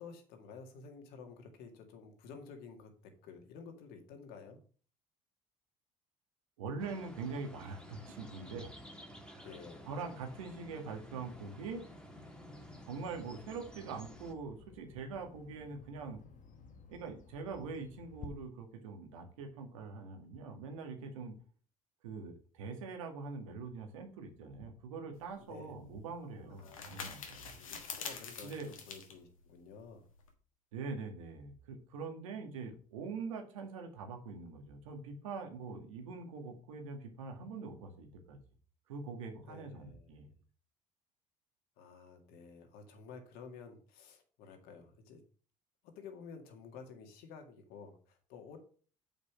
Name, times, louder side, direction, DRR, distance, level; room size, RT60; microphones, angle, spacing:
voice 1, 0.0-2.9 3.2-4.6 9.4-9.9 25.4-25.7 26.5-30.1 39.5-40.4 41.8-45.2 46.0-48.6, left 5 dB, 65° left, 5 dB, 2.0 m, -52 dB
voice 2, 6.6-8.7 9.3-9.5 9.9-11.8 12.9-16.2 16.9-21.4 22.0-27.5 28.4-28.7 30.7-38.4 38.9-40.3, right 4 dB, 80° right, 4 dB, 1.8 m, -43 dB
sound 1, 6.8-14.3, equal, 5° left, 1.9 m, -52 dB
Bird vocalization bird call bird song, 12.5-18.3, left 4 dB, 50° left, 1.4 m, -56 dB
sound 2, 25.1-30.3, left 6 dB, 90° left, 1.4 m, -47 dB
7.3 x 5.3 x 6.1 m, 0.42 s
hypercardioid pair, 60°, 17 cm